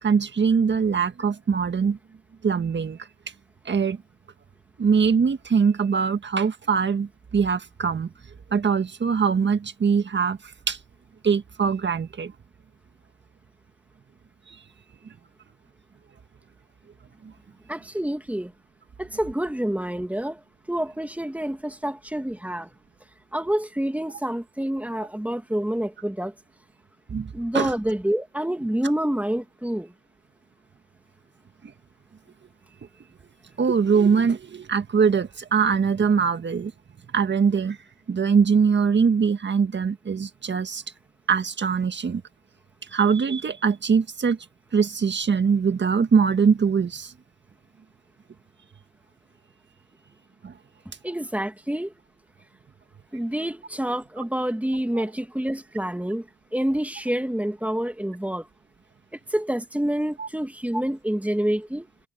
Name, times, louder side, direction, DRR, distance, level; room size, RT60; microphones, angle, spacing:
voice 1, 0.0-2.0 2.4-3.0 3.6-4.0 4.8-8.1 8.5-10.4 10.7-10.8 11.2-12.3 27.1-27.7 33.6-36.7 37.1-37.8 38.1-40.8 41.3-42.2 42.9-44.4 44.7-47.1 50.4-50.5 54.9-55.0 60.2-60.3, right 6 dB, 35° right, 1.6 m, -22 dB
voice 2, 17.7-18.5 19.0-20.4 20.7-22.7 23.3-26.3 27.3-29.9 51.0-51.9 53.1-56.2 56.5-58.5 59.3-61.9, right 1 dB, 5° right, 2.3 m, -27 dB
cardioid pair, 90°, 30 cm